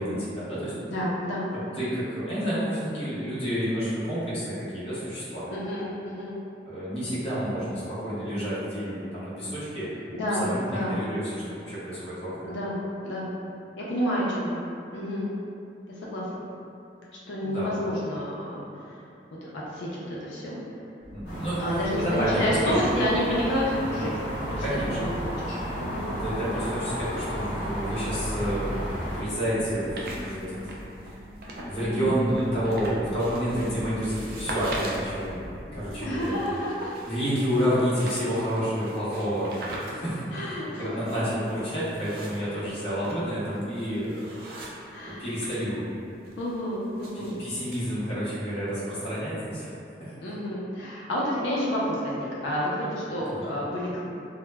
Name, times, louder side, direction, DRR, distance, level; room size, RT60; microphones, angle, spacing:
voice 1, 0.0-0.7 1.7-5.5 6.7-9.9 10.4-12.5 17.4-17.7 21.1-21.6 22.0-23.0 24.6-25.0 26.2-30.8 31.0-31.1 31.6-35.5 35.7-36.4 37.1-44.3 45.0-45.9 47.1-49.7 50.0-50.1 53.3-53.4, equal, 30° left, -11 dB, 0.7 m, -29 dB
voice 2, 0.8-1.4 5.5-6.4 10.1-11.0 12.4-13.3 13.8-14.6 14.9-15.4 16.0-16.3 17.3-18.6 19.4-20.6 21.6-24.5 24.8-25.1 25.4-26.2 31.8-32.2 36.0-36.9 40.3-41.0 44.9-45.3 46.3-47.4 50.2-54.0, equal, 85° left, -6 dB, 0.5 m, -29 dB
sound 1, 21.0-36.4, equal, 30° right, 0.8 m, -43 dB
sound 2, 21.2-29.2, equal, 65° left, 0.8 m, -33 dB
sound 3, 29.6-31.8 32.1-45.6 45.9-47.8, right 2 dB, 55° right, 0.3 m, -42 dB
2.0 x 2.0 x 3.3 m, 2.6 s
head